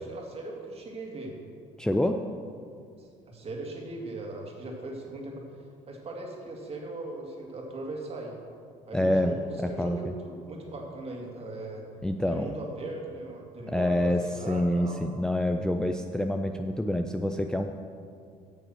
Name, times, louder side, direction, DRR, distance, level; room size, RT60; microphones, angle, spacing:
voice 1, 0.0-1.4 3.0-5.5 5.9-8.4 8.9-11.8 12.3-15.0, right 2 dB, 40° right, 0 dB, 2.2 m, -39 dB
voice 2, 1.8-2.2 8.9-10.1 12.0-12.5 13.7-17.9, left 1 dB, 5° left, 5 dB, 0.4 m, -27 dB
8.8 x 6.5 x 6.3 m, 2.3 s
supercardioid pair, 80°, 15 cm